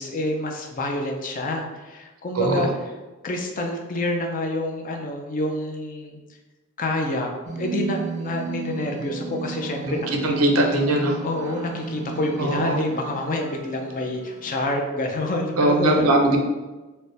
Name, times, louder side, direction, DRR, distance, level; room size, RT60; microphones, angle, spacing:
voice 1, 0.0-2.7 3.2-6.2 6.8-7.3 7.6-10.4 11.2-16.2, left 1 dB, 40° left, 3 dB, 0.5 m, -27 dB
voice 2, 2.3-2.7 9.9-11.2 12.4-12.8 15.6-16.4, right 2 dB, 85° right, 2 dB, 0.6 m, -21 dB
sound 1, 7.5-14.7, right 5 dB, 35° right, 0.3 m, -35 dB
4.2 x 2.2 x 3.2 m, 1.2 s
head